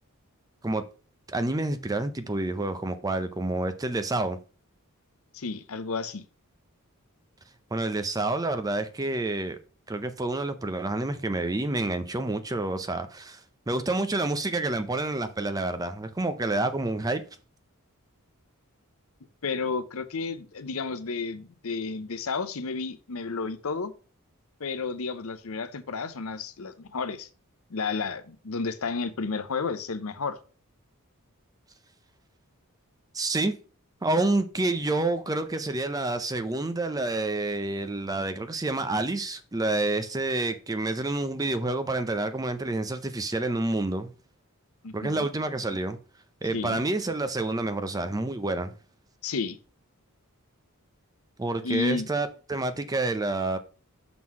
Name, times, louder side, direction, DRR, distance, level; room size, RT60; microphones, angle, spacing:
voice 1, 1.3-4.4 7.7-9.6 9.9-13.4 13.7-17.2 33.1-33.5 34.0-44.1 44.9-46.0 46.4-48.7 51.4-53.6, right 2 dB, 15° right, 0.5 m, -28 dB
voice 2, 5.3-6.2 19.4-23.9 24.6-27.3 27.7-30.4 44.8-45.3 46.5-46.8 49.2-49.6 51.6-52.1, left 4 dB, 70° left, 0.7 m, -32 dB
6.0 x 3.8 x 6.0 m
head